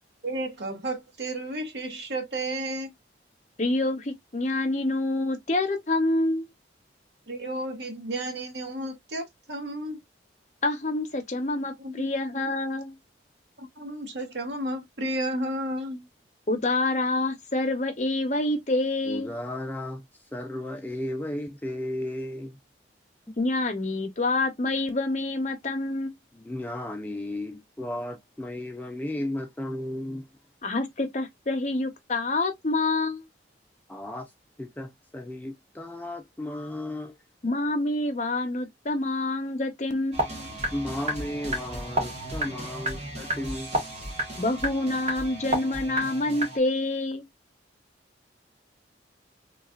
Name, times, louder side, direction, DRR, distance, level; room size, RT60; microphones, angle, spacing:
voice 1, 0.2-2.9 7.3-10.0 11.8-12.1 13.6-16.0, right 1 dB, 65° right, 0.9 m, -32 dB
voice 2, 3.6-6.5 10.6-13.0 16.5-19.3 23.4-26.1 30.6-33.2 37.4-40.5 44.4-47.2, left 2 dB, 40° left, 0.7 m, -27 dB
voice 3, 19.0-20.0 20.3-22.6 26.3-30.3 33.9-34.3 34.6-37.2 40.7-43.8, left 1 dB, 10° left, 0.3 m, -34 dB
sound 1, 40.1-46.6, right 1 dB, 35° right, 1.1 m, -32 dB
3.2 x 2.4 x 2.3 m
head